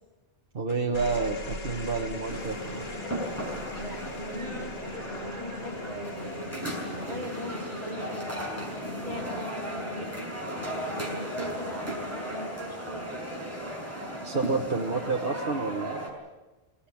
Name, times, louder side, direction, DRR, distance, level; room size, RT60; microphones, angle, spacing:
voice 1, 0.5-2.8 14.2-16.2, right 4 dB, 60° right, 1 dB, 1.7 m, -29 dB
sound 1, 0.7-13.3 14.5-15.0, left 3 dB, 70° left, 2.3 m, -41 dB
sound 2, 2.3-16.1, right 1 dB, 15° right, 5.9 m, -36 dB
voice 2, 3.7-10.1 11.1-13.1 14.8-15.1, equal, 40° right, -5 dB, 5.4 m, -41 dB
24.5 x 18.0 x 8.7 m, 1.1 s
omnidirectional pair, 1.1 m